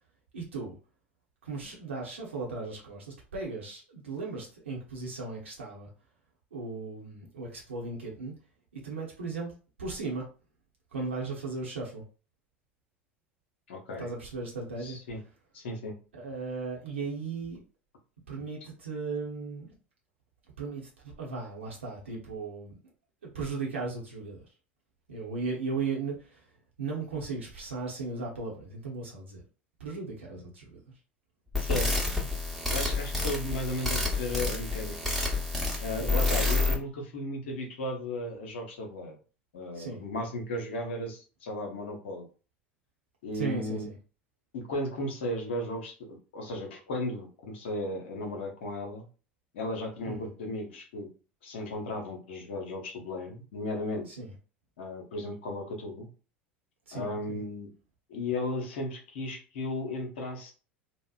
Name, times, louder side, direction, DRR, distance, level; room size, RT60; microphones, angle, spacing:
voice 1, 0.3-0.8 1.4-5.9 6.5-8.3 8.7-9.5 9.8-10.3 10.9-12.0 14.0-15.0 16.1-17.6 18.3-19.7 20.6-22.8 23.3-24.4 25.1-26.4 26.8-29.4 29.8-30.8 36.0-36.2 39.7-40.0 43.3-43.9 50.1-50.3 54.1-54.3 56.9-57.4, right 4 dB, 75° right, -2 dB, 0.8 m, -36 dB
voice 2, 13.7-14.1 14.8-15.2 15.5-16.0 31.6-32.1 32.7-35.0 35.8-39.2 39.5-42.3 43.2-43.9 44.5-49.0 49.5-51.1 51.4-54.1 54.8-56.1 56.9-57.7 58.1-60.5, left 1 dB, 65° left, 2 dB, 0.8 m, -35 dB
sound 1, 31.5-36.7, left 3 dB, ahead, 0.9 m, -29 dB
2.8 x 2.0 x 2.4 m, 0.35 s
figure-of-eight pair, 75°, 6 cm